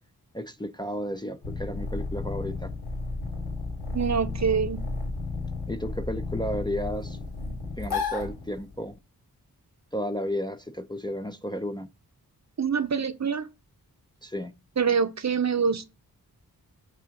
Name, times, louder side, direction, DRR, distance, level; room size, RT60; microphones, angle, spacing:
voice 1, 0.3-2.7 5.7-7.2 7.8-9.0 9.9-11.9 14.2-14.5, equal, 10° left, 0.6 m, -33 dB
sound 1, 1.4-8.9, left 3 dB, 90° left, 3.3 m, -33 dB
voice 2, 3.9-4.8 12.6-13.5 14.8-15.9, right 6 dB, 45° right, 0.8 m, -25 dB
8.7 x 3.6 x 6.3 m
wide cardioid pair, 115°, 38 cm